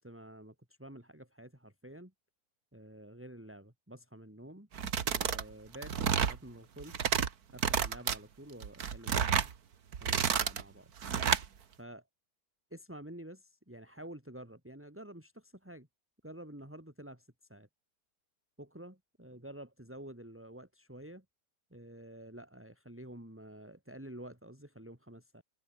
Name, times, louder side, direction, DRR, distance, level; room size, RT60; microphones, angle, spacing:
voice 1, 0.0-2.1 2.7-4.7 5.0-7.1 7.5-9.5 10.0-10.9 11.8-12.0 12.7-15.9 16.2-17.7 18.6-21.3 21.7-25.4, right 1 dB, 10° right, 3.8 m, -49 dB
sound 1, 4.7-5.4 5.7-6.4 6.8-7.3 7.6-8.2 8.6-9.5 9.9-10.6 11.0-11.5, right 7 dB, 80° right, 1.9 m, -30 dB
omnidirectional pair, 1.6 m